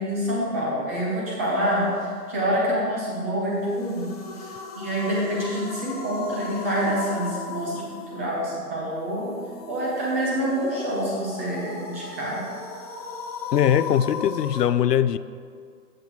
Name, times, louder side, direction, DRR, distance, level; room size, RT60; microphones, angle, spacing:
voice 1, 0.0-7.8 8.1-9.3 9.7-12.4, equal, 10° right, 0.6 m, -27 dB
sound 1, 3.6-14.7, left 4 dB, 25° left, 0.7 m, -38 dB
voice 2, 13.5-15.2, left 10 dB, 85° left, 0.5 m, -21 dB
14.0 x 8.0 x 2.9 m
hypercardioid pair, 150°, 47 cm